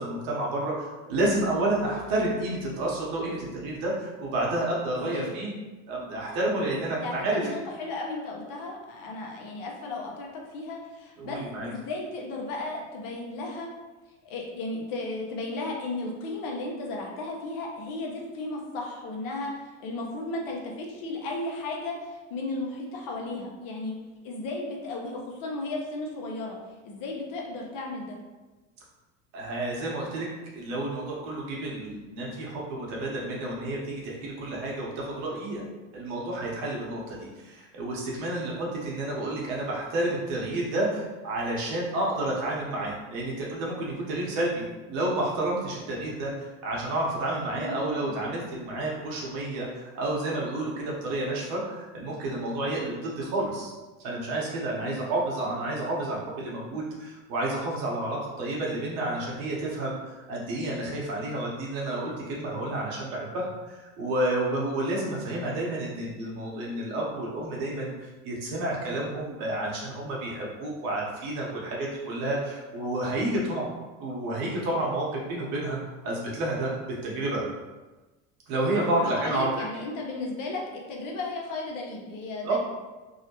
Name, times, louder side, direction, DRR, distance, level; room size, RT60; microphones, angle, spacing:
voice 1, 0.0-5.5 5.9-7.4 11.2-11.7 29.3-30.3 30.5-35.6 35.9-46.3 46.6-53.7 54.0-60.0 60.3-73.7 74.0-75.8 76.0-77.4 78.5-79.5 82.4-82.6, right 1 dB, 65° right, -3 dB, 1.0 m, -30 dB
voice 2, 5.0-5.4 6.7-6.8 7.0-11.4 11.6-13.7 14.2-23.9 24.2-26.6 26.8-28.2 47.4-48.3 54.8-55.0 78.9-82.6, left 2 dB, 60° left, 0 dB, 0.8 m, -35 dB
2.8 x 2.1 x 2.9 m, 1.2 s
hypercardioid pair, 85°, 38 cm